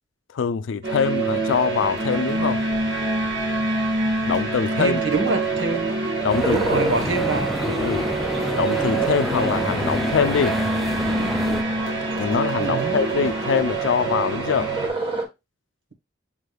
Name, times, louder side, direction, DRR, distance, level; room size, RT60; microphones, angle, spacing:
voice 1, 0.3-2.6 4.2-5.0 6.2-6.9 7.7-8.1 8.6-10.6 12.2-14.7, left 6 dB, 90° left, 0.4 m, -24 dB
sound 1, 0.8-14.9, right 3 dB, 70° right, 1.5 m, -25 dB
voice 2, 4.8-5.9 6.5-7.5 12.6-13.0, right 3 dB, 90° right, 1.2 m, -25 dB
sound 2, 6.3-11.6, equal, ahead, 0.4 m, -28 dB
sound 3, 6.4-15.3, right 2 dB, 30° right, 1.2 m, -32 dB
7.2 x 3.3 x 2.2 m
head